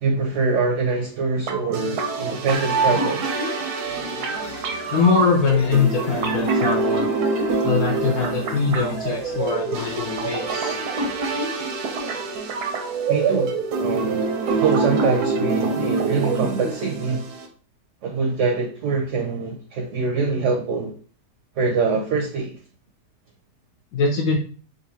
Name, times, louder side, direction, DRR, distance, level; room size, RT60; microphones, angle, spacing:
voice 1, 0.0-3.2 13.1-14.2 14.6-17.3 18.0-20.9 21.6-22.6, right 4 dB, 65° right, 0.8 m, -24 dB
sound 1, 1.5-17.5, right 4 dB, 90° right, 1.2 m, -25 dB
sound 2, 3.2-11.5, left 2 dB, 45° left, 0.8 m, -43 dB
voice 2, 4.9-7.1 7.6-10.8 23.9-24.4, left 5 dB, 70° left, 1.0 m, -22 dB
3.9 x 2.5 x 2.7 m
omnidirectional pair, 1.6 m